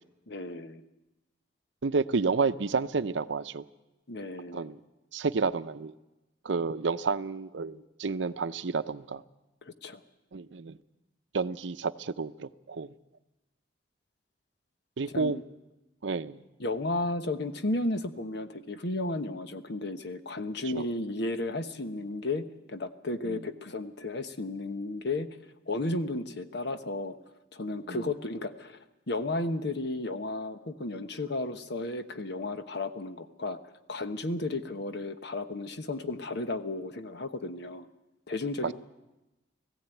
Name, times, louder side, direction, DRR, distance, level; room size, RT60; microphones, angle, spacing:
voice 1, 0.3-0.8 4.1-4.7 9.6-10.0 15.1-15.4 16.6-25.3 25.7-27.1 27.5-28.8 29.1-33.6 33.9-37.9 38.3-38.7, left 2 dB, 65° left, 9 dB, 1.1 m, -33 dB
voice 2, 1.8-3.6 4.5-4.8 5.1-5.9 6.4-9.2 10.3-10.8 11.3-12.9 15.0-15.4 16.0-16.4 20.8-20.9 23.3-23.4 27.9-28.0, right 4 dB, 70° right, 13 dB, 0.6 m, -30 dB
18.5 x 15.5 x 9.1 m, 1.0 s
head